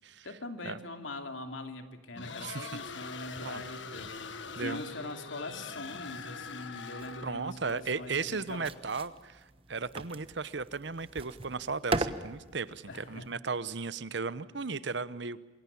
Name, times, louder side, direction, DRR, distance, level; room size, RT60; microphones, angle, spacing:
voice 1, 0.2-8.7 12.9-13.3, left 2 dB, 90° left, 6 dB, 2.9 m, -42 dB
sound 1, 2.2-7.5, left 4 dB, 75° left, 1.7 m, -43 dB
voice 2, 2.4-2.8 3.4-3.6 4.5-4.8 7.2-15.4, right 4 dB, 65° right, 16 dB, 0.9 m, -36 dB
sound 2, 7.0-13.4, right 2 dB, 30° right, 1.1 m, -39 dB
27.5 x 22.5 x 8.6 m, 1.2 s
head